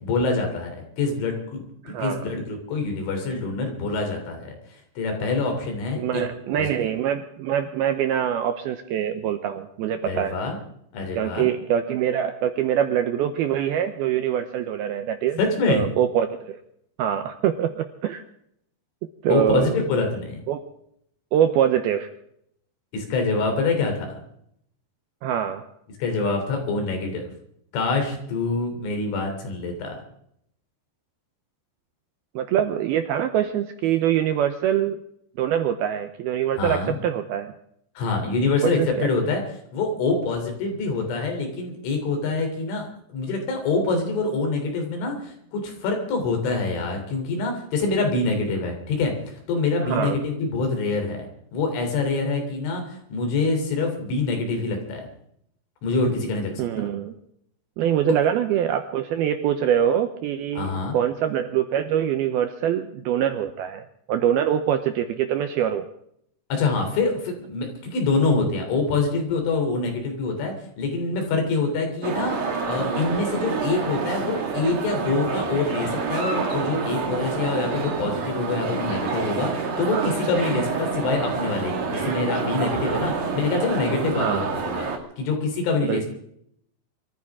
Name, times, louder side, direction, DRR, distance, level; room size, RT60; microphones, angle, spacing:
voice 1, 0.0-4.5 5.0-6.2 6.5-6.9 10.0-10.6 10.9-11.5 15.4-15.9 19.3-20.4 22.9-24.2 26.0-27.3 27.7-30.0 36.6-37.0 38.0-39.4 39.7-55.1 55.8-56.6 58.1-58.2 60.6-61.0 66.5-72.4 72.7-84.9 85.2-86.1, left 3 dB, 85° left, 3 dB, 5.9 m, -25 dB
voice 2, 1.8-2.2 6.0-10.4 11.2-15.4 15.7-16.6 17.0-18.2 19.2-19.8 20.5-20.7 21.3-22.1 25.2-25.7 32.4-35.0 35.4-37.5 38.6-39.1 49.8-50.2 56.6-57.2 57.8-65.9 79.9-80.2 84.1-84.5 85.8-86.0, right 10 dB, 80° right, 7 dB, 2.3 m, -24 dB
sound 1, 72.0-85.0, right 4 dB, 45° right, 2.7 m, -28 dB
24.5 x 14.5 x 3.7 m, 0.72 s
omnidirectional pair, 5.3 m